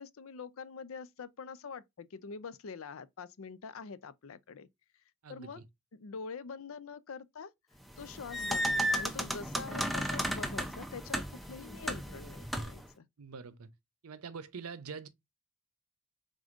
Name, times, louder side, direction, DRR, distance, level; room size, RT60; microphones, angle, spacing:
voice 1, 0.0-4.7 5.3-5.6 5.9-7.5 8.0-13.1, left 5 dB, 70° left, 0.5 m, -45 dB
voice 2, 5.2-5.6 13.2-13.7 14.0-15.1, right 5 dB, 90° right, 0.6 m, -44 dB
sound 1, 7.9-12.9, equal, ahead, 0.5 m, -34 dB
5.1 x 3.6 x 2.5 m
head